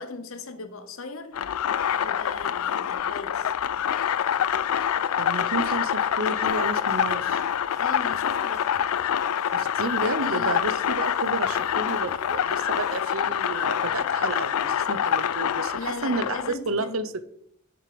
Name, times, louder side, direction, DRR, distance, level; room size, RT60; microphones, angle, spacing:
voice 1, 0.0-1.4 2.0-3.5 7.8-8.7 10.2-10.8 15.7-17.0, left 3 dB, 70° left, 1.0 m, -37 dB
sound 1, 1.3-16.5, left 9 dB, 85° left, 0.4 m, -26 dB
voice 2, 5.2-7.4 9.5-17.1, right 3 dB, 70° right, 0.7 m, -31 dB
sound 2, 6.5-13.0, left 1 dB, 15° left, 1.4 m, -56 dB
7.1 x 6.7 x 5.1 m
head